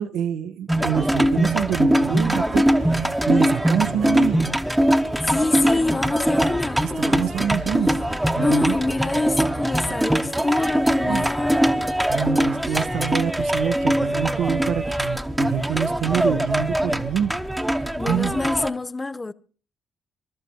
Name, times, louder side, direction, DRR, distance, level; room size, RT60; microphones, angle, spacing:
voice 1, 0.0-4.4 7.0-7.9 8.3-8.7 11.0-11.3 12.1-17.3 17.7-18.3, right 9 dB, 60° right, 1.0 m, -26 dB
sound 1, 0.7-18.7, right 1 dB, 5° right, 1.2 m, -22 dB
voice 2, 5.2-7.2 8.3-12.0 12.7-12.8 18.0-19.3, left 2 dB, 20° left, 0.7 m, -26 dB
26.5 x 13.0 x 2.9 m
figure-of-eight pair, 45°, 0 cm